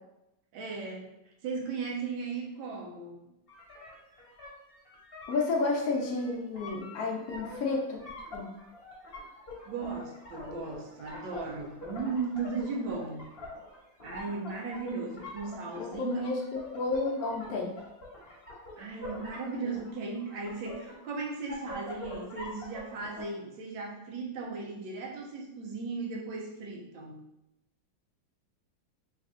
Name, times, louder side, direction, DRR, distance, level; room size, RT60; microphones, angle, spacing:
voice 1, 0.5-1.1 1.4-3.3 9.7-13.3 14.0-16.3 18.8-27.2, right 4 dB, 80° right, 0 dB, 1.4 m, -36 dB
sound 1, 3.5-23.2, left 2 dB, 40° left, 0.9 m, -45 dB
voice 2, 5.3-8.0 8.3-8.5 15.8-16.3 16.7-17.7, left 3 dB, 75° left, 0 dB, 0.8 m, -31 dB
3.9 x 2.4 x 3.6 m, 0.90 s
omnidirectional pair, 2.1 m